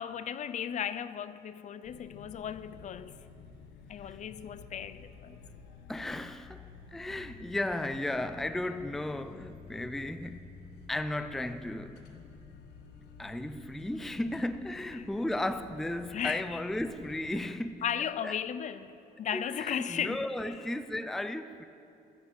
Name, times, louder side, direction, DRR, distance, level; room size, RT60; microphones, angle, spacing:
voice 1, 0.0-3.2 3.9-5.4 14.9-15.1 16.1-16.6 17.8-20.5, left 9 dB, 45° left, 0.6 m, -36 dB
sound 1, 1.8-17.5, left 5 dB, 90° left, 1.3 m, -51 dB
voice 2, 5.9-10.6 10.9-12.1 13.2-17.8 18.2-18.3 19.3-21.7, left 1 dB, ahead, 0.4 m, -35 dB
13.5 x 11.0 x 8.6 m
cardioid pair, 110°, 17 cm